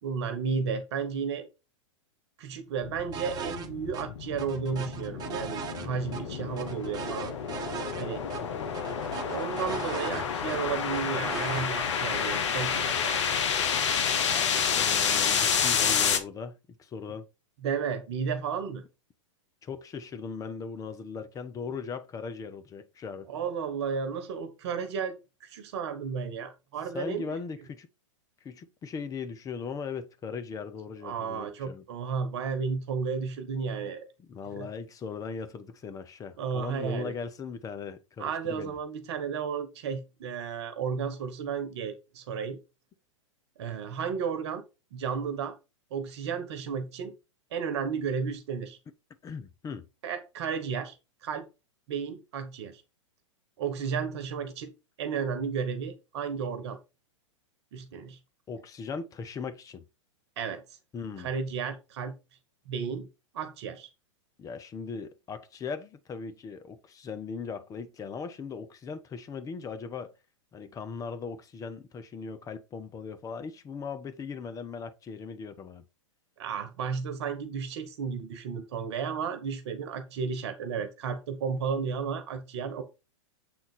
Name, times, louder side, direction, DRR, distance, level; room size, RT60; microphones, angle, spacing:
voice 1, 0.0-1.5 2.4-7.3 8.0-8.3 9.2-13.2 17.6-18.8 23.3-27.4 31.0-34.1 34.5-34.7 36.4-37.1 38.2-42.6 43.6-44.6 44.9-45.6 45.9-47.1 47.5-48.8 50.0-51.0 51.2-51.4 51.9-52.8 53.6-54.7 55.0-56.8 57.7-58.2 60.4-60.6 61.2-62.1 62.7-63.1 63.3-63.9 76.4-82.8, right 6 dB, 55° right, 1.3 m, -33 dB
sound 1, 2.8-16.2, left 7 dB, 65° left, 1.2 m, -29 dB
sound 2, 3.1-3.7 3.9-4.0 4.4-6.2 6.6-8.0 8.3-8.4 8.7-10.6 10.9-11.7, right 6 dB, 25° right, 1.4 m, -38 dB
voice 2, 8.4-8.8 14.3-17.2 19.6-23.3 26.9-27.9 28.4-31.8 34.2-38.8 49.2-49.9 58.5-59.8 60.9-61.3 64.4-70.1 70.5-75.8, left 5 dB, 20° left, 1.0 m, -39 dB
7.8 x 3.9 x 4.2 m
hypercardioid pair, 110°, 16 cm